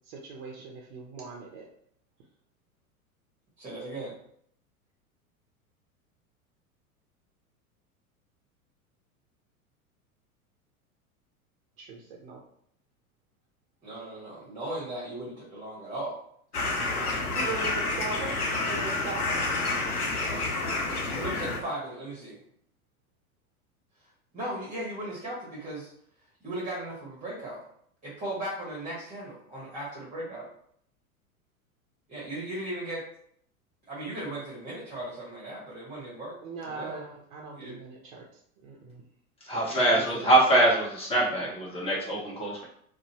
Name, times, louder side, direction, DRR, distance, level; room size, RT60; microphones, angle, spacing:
voice 1, 0.1-1.7 11.8-12.4 17.1-19.4 36.4-38.2 38.6-39.0, right 4 dB, 45° right, 0 dB, 0.6 m, -40 dB
voice 2, 3.6-4.1 13.8-16.2 19.0-19.2 20.1-20.4 21.1-22.4 24.3-25.9 26.4-27.6 28.0-30.5 32.1-33.0 33.9-37.0 37.6-37.8 39.5-40.3, right 1 dB, 15° right, -5 dB, 1.0 m, -37 dB
sound 1, 16.5-21.6, left 3 dB, 85° left, 0.6 m, -29 dB
voice 3, 39.5-42.6, right 1 dB, 15° left, -5 dB, 0.9 m, -24 dB
2.6 x 2.0 x 2.9 m, 0.66 s
figure-of-eight pair, 90°, 44 cm